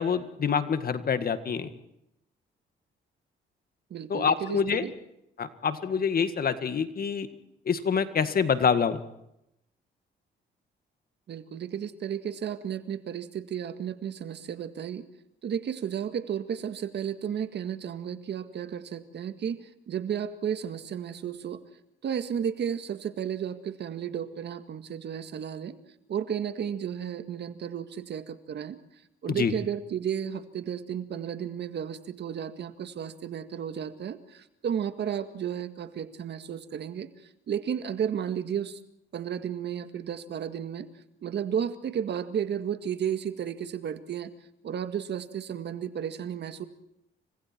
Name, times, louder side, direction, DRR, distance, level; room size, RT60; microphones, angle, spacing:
voice 1, 0.0-1.7 4.1-4.8 5.4-7.3 7.7-9.0 29.3-29.5, left 6 dB, 50° left, 10 dB, 1.9 m, -26 dB
voice 2, 3.9-4.9 11.3-15.1 15.4-21.6 22.0-25.7 26.1-28.8 29.2-37.1 37.5-38.8 39.1-40.9 41.2-44.3 44.6-46.7, right 8 dB, 60° right, 9 dB, 1.9 m, -33 dB
29.5 x 24.5 x 4.5 m, 0.81 s
cardioid pair, 90°, 20 cm